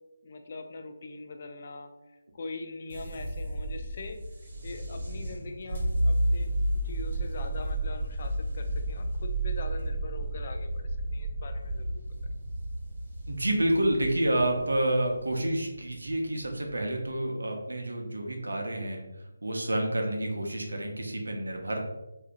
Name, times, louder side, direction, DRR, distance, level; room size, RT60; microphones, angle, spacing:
voice 1, 0.2-1.9 2.3-4.2 4.6-12.0, left 3 dB, 45° left, 5 dB, 0.4 m, -42 dB
sound 1, 2.9-17.1, right 1 dB, 50° right, 1.3 m, -32 dB
voice 2, 13.3-19.0 19.4-21.8, right 1 dB, 80° right, 2 dB, 0.7 m, -29 dB
3.4 x 2.7 x 2.5 m, 1.0 s
figure-of-eight pair, 155°, 0 cm